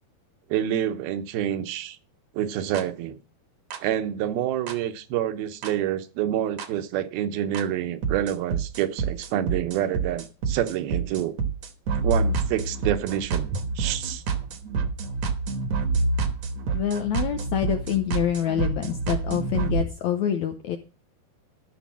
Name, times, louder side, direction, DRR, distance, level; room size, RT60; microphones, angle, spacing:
voice 1, 0.5-2.0 2.3-3.2 3.8-11.3 12.0-14.2, right 11 dB, 80° right, 2.8 m, -27 dB
sound 1, 2.7-2.8 3.7-3.8 4.7-4.8 5.6-5.7 6.6-6.7 7.5-7.6 8.0-19.8, right 4 dB, 60° right, 1.9 m, -28 dB
voice 2, 16.7-20.8, left 10 dB, 80° left, 1.6 m, -26 dB
13.5 x 5.3 x 7.4 m
omnidirectional pair, 4.4 m